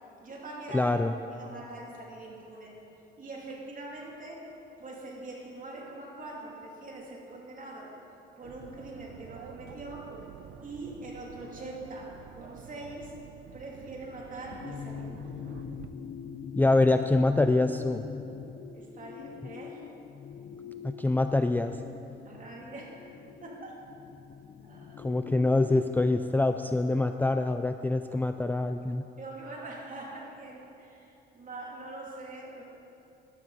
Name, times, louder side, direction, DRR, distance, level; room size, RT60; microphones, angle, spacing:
voice 1, 0.2-1.0 1.3-2.8 3.2-4.5 4.8-7.9 8.4-10.2 10.6-13.1 13.5-15.6 18.7-19.8 22.2-23.1 23.4-23.8 24.6-25.1 29.2-32.6, right 2 dB, 40° right, -2 dB, 2.8 m, -43 dB
voice 2, 0.7-1.1 16.6-18.0 20.8-21.8 25.0-29.0, left 2 dB, 10° left, 7 dB, 0.4 m, -25 dB
sound 1, 8.4-15.9, right 9 dB, 85° right, 0.5 m, -49 dB
sound 2, 14.5-26.2, left 7 dB, 50° left, 0.6 m, -43 dB
13.5 x 12.0 x 4.0 m, 2.8 s
cardioid pair, 90°, 20 cm